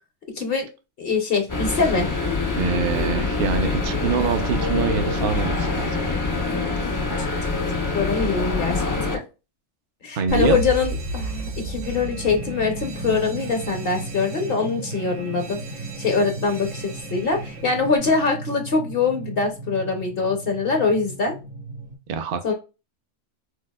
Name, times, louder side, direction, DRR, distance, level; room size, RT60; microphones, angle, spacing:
voice 1, 0.4-0.7 1.0-2.1 7.9-8.8 9.1-9.2 10.0-15.6 16.0-21.3 22.4-22.5, left 4 dB, 55° left, 0.8 m, -23 dB
sound 1, 1.5-9.2, left 3 dB, 25° left, 0.4 m, -25 dB
voice 2, 2.6-5.9 10.2-10.6 22.1-22.5, right 6 dB, 55° right, 0.7 m, -25 dB
Alarm, 10.3-18.0, right 2 dB, 75° right, 1.0 m, -34 dB
sound 2, 10.9-22.0, right 2 dB, 20° right, 0.6 m, -36 dB
4.6 x 2.4 x 2.2 m
omnidirectional pair, 1.3 m